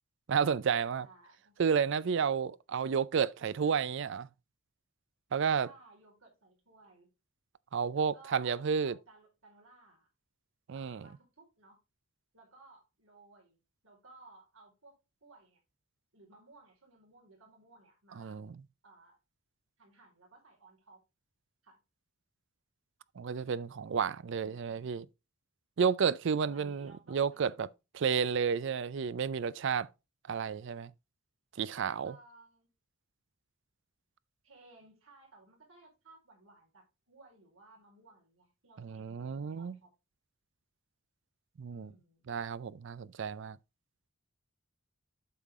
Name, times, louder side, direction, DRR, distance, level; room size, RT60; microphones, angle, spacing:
voice 1, 0.3-1.1 1.6-4.3 5.3-5.7 7.7-9.0 10.7-11.1 18.2-18.6 23.2-25.1 25.8-27.7 27.9-29.9 30.3-30.9 31.6-32.2 38.8-39.7 41.6-41.9 42.3-43.6, right 6 dB, 60° right, 0.4 m, -31 dB
voice 2, 1.0-1.6 5.6-7.1 7.9-10.1 10.7-11.8 12.3-13.6 13.8-15.6 16.1-18.4 18.8-19.2 19.8-21.0 21.6-21.8 26.4-27.7 32.0-32.7 34.4-39.9 41.7-42.3, right 3 dB, 80° right, 4.4 m, -59 dB
8.3 x 5.8 x 3.6 m
head